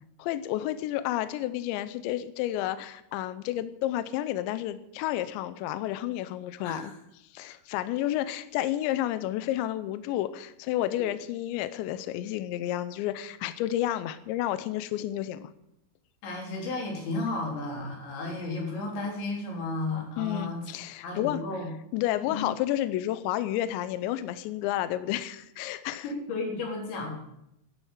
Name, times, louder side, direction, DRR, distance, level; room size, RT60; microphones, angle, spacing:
voice 1, 0.2-6.9 7.3-15.5 20.2-21.4 21.9-26.1, left 13 dB, 85° left, 13 dB, 2.6 m, -31 dB
voice 2, 16.2-20.7 21.0-21.7 22.3-22.5 26.0-27.1, left 2 dB, 60° left, -1 dB, 5.6 m, -33 dB
12.0 x 11.5 x 7.4 m, 0.82 s
omnidirectional pair, 6.0 m